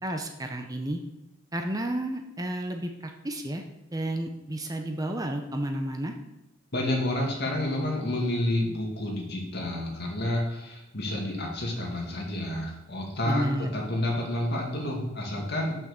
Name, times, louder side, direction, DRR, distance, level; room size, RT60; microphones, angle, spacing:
voice 1, 0.0-1.0 1.5-3.6 3.9-6.1 13.2-13.7, right 1 dB, 20° right, 4 dB, 0.7 m, -31 dB
voice 2, 6.7-15.8, left 1 dB, 55° left, -1 dB, 2.2 m, -29 dB
6.2 x 6.1 x 7.1 m, 1.0 s
head